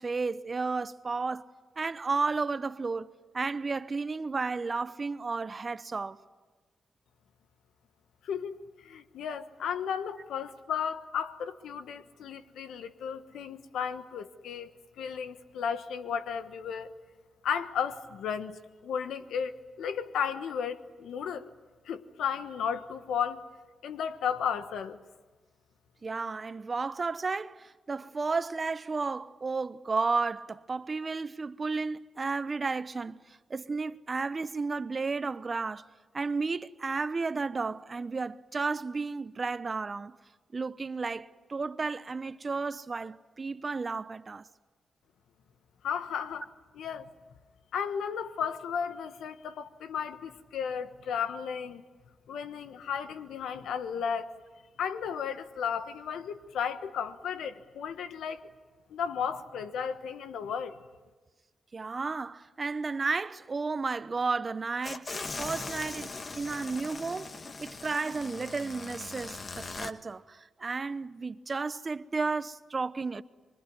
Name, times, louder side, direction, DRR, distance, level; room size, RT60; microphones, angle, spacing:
voice 1, 0.0-1.5 1.8-6.2 26.0-35.9 36.1-40.2 40.5-44.5 61.7-73.2, right 4 dB, 40° right, 0.9 m, -33 dB
voice 2, 8.2-16.9 17.4-21.5 21.8-23.5 23.8-25.0 45.8-46.5 46.7-47.1 47.7-51.8 52.3-54.3 54.8-58.5 58.9-60.8, left 7 dB, 85° left, 1.3 m, -34 dB
sound 1, 64.8-69.9, left 3 dB, 45° left, 1.4 m, -40 dB
25.5 x 24.0 x 9.6 m
cardioid pair, 65°, 0 cm